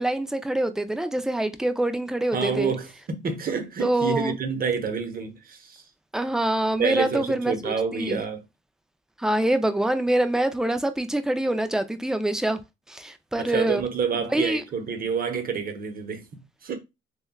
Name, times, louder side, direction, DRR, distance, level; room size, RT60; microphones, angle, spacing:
voice 1, 0.0-2.7 3.8-4.3 6.1-8.2 9.2-12.6 12.9-13.8 14.3-14.6, right 1 dB, 5° right, 0.3 m, -25 dB
voice 2, 2.3-5.8 6.8-8.4 13.4-16.8, right 5 dB, 45° right, 0.8 m, -28 dB
3.2 x 2.2 x 2.2 m
cardioid pair, 90°, 20 cm